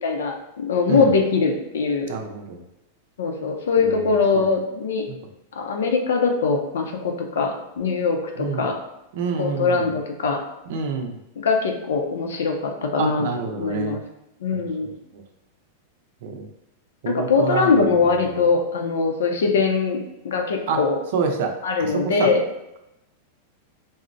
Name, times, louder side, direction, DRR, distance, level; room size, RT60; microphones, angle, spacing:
voice 1, 0.0-2.1 3.2-5.0 5.6-8.8 9.4-10.4 11.4-13.3 13.5-14.0 14.4-14.9 17.1-21.0 21.6-22.4, left 4 dB, 90° left, 3 dB, 0.5 m, -22 dB
voice 2, 2.1-2.6 3.8-4.5 5.1-5.2 8.4-8.7 9.1-9.9 10.7-11.2 13.0-14.0 14.5-14.7 16.2-16.5 17.0-18.0 18.3-18.4 20.7-20.8 21.1-21.5 21.8-22.3, right 5 dB, 65° right, 3 dB, 0.5 m, -27 dB
3.8 x 2.0 x 2.6 m, 0.88 s
supercardioid pair, 135°, 0 cm